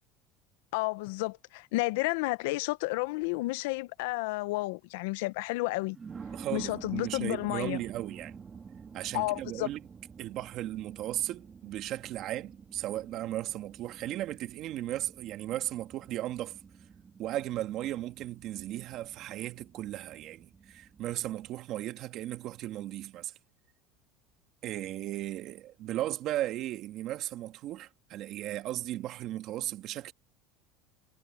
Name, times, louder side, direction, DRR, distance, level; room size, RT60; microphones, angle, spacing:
voice 1, 0.7-6.0 6.5-7.8 9.1-9.7, left 22 dB, 80° left, 0.7 m, -31 dB
sound 1, 3.2-3.4 4.1-4.2 5.9-21.5, right 6 dB, 25° right, 2.3 m, -49 dB
voice 2, 6.3-8.4 8.9-9.8 10.2-16.6 17.2-23.3 24.6-30.1, right 14 dB, 55° right, 1.9 m, -36 dB
supercardioid pair, 120°, 0 cm